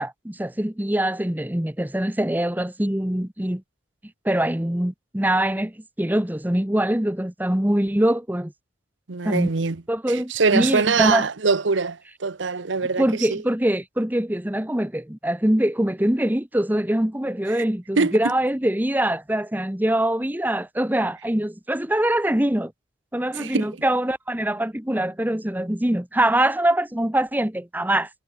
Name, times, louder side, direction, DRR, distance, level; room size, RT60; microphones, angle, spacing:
voice 1, 0.0-3.6 4.2-8.5 9.2-9.5 9.9-11.3 13.0-22.7 23.1-28.1, right 1 dB, 10° right, 1.0 m, -23 dB
voice 2, 9.1-9.8 10.1-13.4 18.0-18.1 23.3-23.7, right 4 dB, 80° right, 0.9 m, -23 dB
head